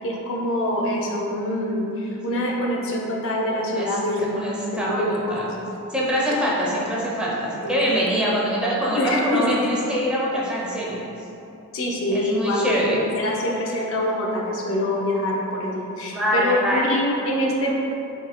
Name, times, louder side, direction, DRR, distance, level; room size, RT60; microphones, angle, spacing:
voice 1, 0.0-4.4 4.7-5.6 7.6-7.8 8.9-9.7 11.7-17.7, left 1 dB, 65° left, -2 dB, 0.5 m, -25 dB
voice 2, 4.3-5.4 5.9-11.0 12.1-13.0 16.1-16.8, equal, 5° right, -6 dB, 0.5 m, -24 dB
2.7 x 2.7 x 4.1 m, 2.8 s
head